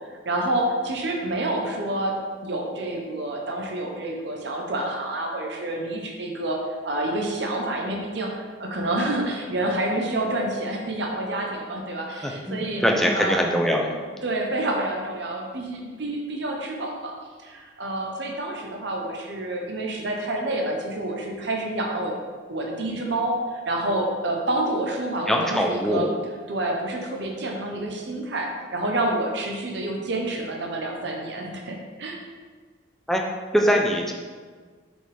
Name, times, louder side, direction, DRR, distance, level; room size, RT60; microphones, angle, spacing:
voice 1, 0.0-2.2 2.4-12.8 13.1-13.4 14.2-17.1 17.4-22.1 22.5-26.1 26.5-32.2, right 1 dB, 60° right, 0 dB, 0.9 m, -28 dB
voice 2, 12.2-13.9 25.3-26.1 33.1-33.2 33.5-34.1, equal, ahead, 0 dB, 0.5 m, -22 dB
7.1 x 5.3 x 3.4 m, 1.5 s
head